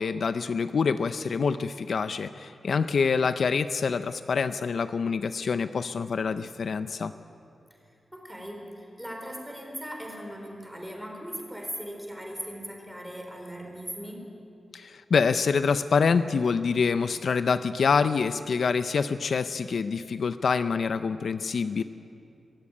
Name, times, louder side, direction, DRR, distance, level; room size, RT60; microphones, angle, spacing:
voice 1, 0.0-7.1 14.7-21.8, left 5 dB, 65° left, 12 dB, 0.6 m, -26 dB
voice 2, 8.1-14.3, equal, 5° right, 2 dB, 4.1 m, -39 dB
23.0 x 16.0 x 9.8 m, 2.6 s
wide cardioid pair, 145°, 0 cm